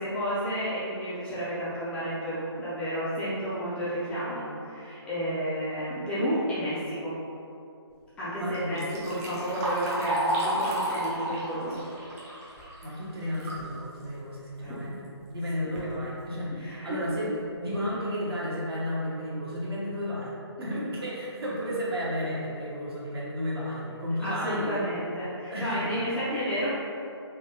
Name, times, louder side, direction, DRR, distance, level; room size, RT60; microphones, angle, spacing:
voice 1, 0.0-7.2 8.2-11.8 14.6-14.7 16.6-17.0 24.2-26.7, equal, 5° left, -12 dB, 0.5 m, -31 dB
voice 2, 8.4-8.9 12.8-24.8 25.5-25.9, equal, 60° right, -6 dB, 1.1 m, -33 dB
Liquid, 8.5-13.7 14.1-14.2 15.0-15.1 15.6-15.9 16.5-16.6 17.1-17.2 17.6-17.9, right 1 dB, 30° right, 0.8 m, -32 dB
3.6 x 2.9 x 2.8 m, 2.7 s
figure-of-eight pair, 150°, 14 cm